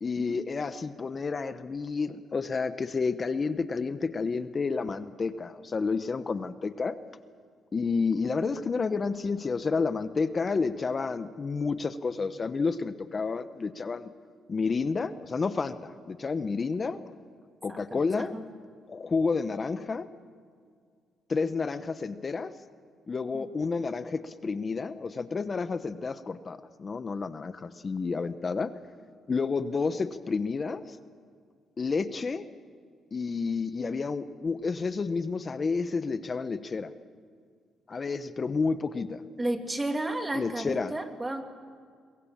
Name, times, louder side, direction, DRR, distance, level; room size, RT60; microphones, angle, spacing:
voice 1, 0.0-7.0 7.7-14.1 14.5-17.0 17.6-18.3 18.9-20.0 21.3-22.5 23.1-28.7 29.3-31.0 31.8-32.5 33.1-36.9 37.9-39.2 40.3-40.9, left 4 dB, 35° left, 12 dB, 1.0 m, -30 dB
voice 2, 17.7-18.4 23.3-23.5 39.4-41.4, right 1 dB, 20° right, 6 dB, 2.3 m, -32 dB
22.5 x 21.5 x 7.4 m, 2.1 s
cardioid pair, 90°, 0 cm